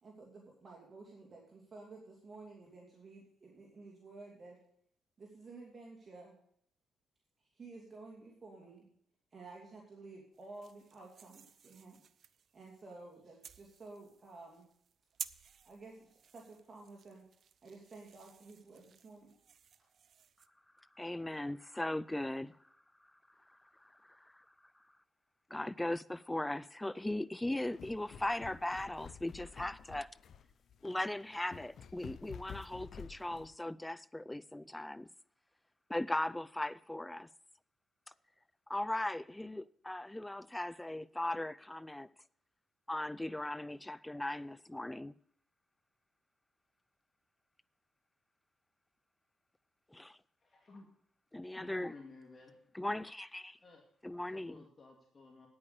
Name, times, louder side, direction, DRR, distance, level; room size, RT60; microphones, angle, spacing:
voice 1, 0.0-4.6 5.2-6.4 7.5-8.9 9.3-12.0 12.5-14.7 15.6-17.3 17.6-19.3, right 3 dB, 40° right, 2.6 m, -52 dB
sound 1, 10.3-20.5, right 7 dB, 55° right, 0.5 m, -54 dB
voice 2, 21.0-22.6 23.8-24.4 25.5-30.1 30.8-35.1 35.9-37.3 38.7-42.1 42.9-45.2 49.9-50.2 51.3-51.9 52.8-53.6 54.0-54.6, left 1 dB, 10° left, 0.4 m, -38 dB
Walking down Stairs, 27.5-33.5, left 7 dB, 60° left, 0.6 m, -51 dB
voice 3, 50.4-50.9 51.6-52.6 53.6-53.8 54.3-55.5, left 3 dB, 30° left, 2.3 m, -55 dB
9.6 x 8.7 x 6.6 m
cardioid pair, 90°, 0 cm